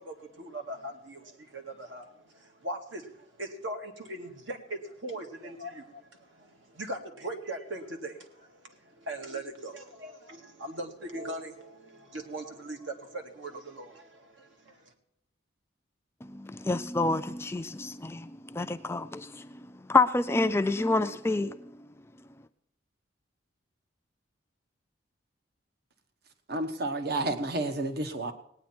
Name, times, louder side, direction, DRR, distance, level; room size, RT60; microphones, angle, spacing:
voice 1, 0.0-14.9, right 1 dB, 75° right, 2.0 m, -40 dB
voice 2, 16.2-19.6 19.9-21.7, left 3 dB, 15° left, 0.4 m, -28 dB
voice 3, 26.5-28.3, right 2 dB, 55° right, 1.1 m, -30 dB
19.0 x 9.4 x 4.4 m
head